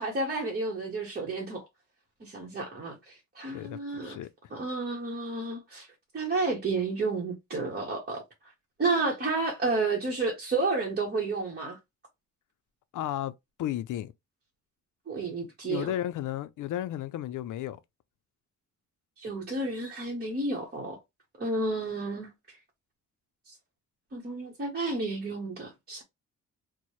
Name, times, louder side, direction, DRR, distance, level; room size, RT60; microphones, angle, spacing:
voice 1, 0.0-1.7 2.2-4.2 4.5-5.9 6.1-8.2 8.8-11.8 15.1-15.9 19.2-21.0 21.4-22.3 23.5-23.6 24.1-26.0, right 3 dB, 30° right, 0.8 m, -31 dB
voice 2, 3.5-4.3 12.9-13.3 13.6-14.1 15.7-17.8, left 12 dB, 70° left, 0.4 m, -33 dB
4.5 x 2.0 x 2.9 m
wide cardioid pair, 170°, 32 cm